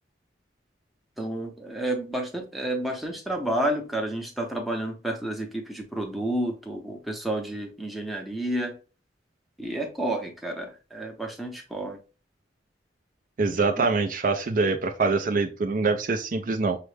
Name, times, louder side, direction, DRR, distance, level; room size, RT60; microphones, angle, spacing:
voice 1, 1.2-8.7 9.6-12.0 13.8-13.9, right 1 dB, ahead, 0 dB, 0.7 m, -30 dB
voice 2, 13.4-16.8, right 4 dB, 45° right, 5 dB, 0.4 m, -24 dB
5.8 x 2.1 x 3.2 m, 0.34 s
head